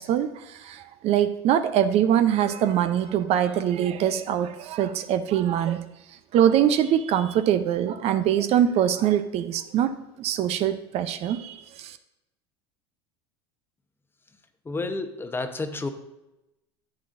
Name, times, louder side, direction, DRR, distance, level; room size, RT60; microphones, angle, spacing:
voice 1, 0.0-5.8 6.3-12.0, right 10 dB, 50° right, 10 dB, 0.6 m, -23 dB
voice 2, 14.7-15.9, left 3 dB, 15° left, 7 dB, 0.9 m, -30 dB
11.5 x 7.9 x 2.6 m, 0.94 s
hypercardioid pair, 90°, 14 cm